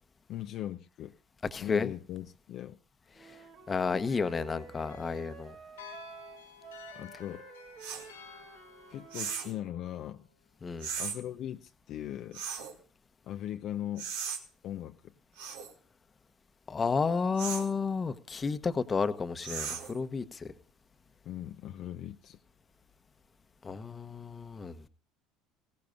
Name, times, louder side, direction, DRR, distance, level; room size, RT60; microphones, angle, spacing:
voice 1, 0.3-1.1 1.6-2.8 6.9-7.5 8.9-10.2 11.0-12.4 13.2-14.1 14.6-15.1 21.2-22.4, left 12 dB, 55° left, 7 dB, 0.6 m, -39 dB
voice 2, 1.5-1.9 3.7-5.5 10.6-10.9 16.7-20.5 23.6-24.8, left 5 dB, 30° left, 11 dB, 1.0 m, -31 dB
Wind instrument woodwind instrument, 3.1-9.4, right 7 dB, 50° right, 1.4 m, -51 dB
Loreta bell toy, 4.1-10.3, left 8 dB, 90° left, 2.7 m, -53 dB
sound 1, 7.8-8.1 9.1-9.6 10.8-11.2 12.3-12.7 14.0-14.4 15.4-15.7 17.4-17.7 19.4-20.0, right 7 dB, 75° right, 1.8 m, -37 dB
19.5 x 16.5 x 2.6 m, 0.39 s
hypercardioid pair, 70°, 0 cm